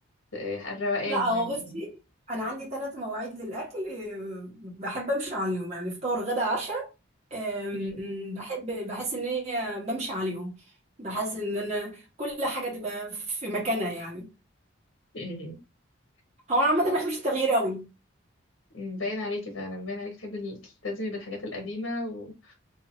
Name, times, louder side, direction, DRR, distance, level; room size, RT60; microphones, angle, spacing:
voice 1, 0.3-1.8 7.7-8.2 15.1-15.6 16.8-16.9 18.7-22.5, left 2 dB, 70° left, 1.1 m, -34 dB
voice 2, 1.1-2.0 2.3-6.9 7.3-10.5 11.0-14.3 16.5-17.9, right 1 dB, 35° right, 1.2 m, -30 dB
2.7 x 2.6 x 2.9 m
head